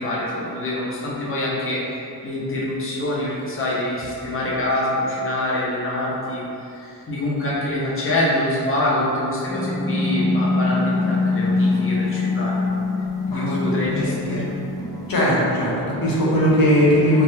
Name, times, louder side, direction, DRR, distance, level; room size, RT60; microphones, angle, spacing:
voice 1, 0.0-12.7 13.3-14.4, left 1 dB, 30° left, -6 dB, 0.7 m, -25 dB
sound 1, 9.5-15.1, left 3 dB, 10° left, 0.3 m, -23 dB
voice 2, 13.3-14.5 15.1-17.2, equal, 55° left, -6 dB, 0.9 m, -19 dB
3.4 x 2.3 x 2.8 m, 2.7 s
cardioid pair, 95°, 41 cm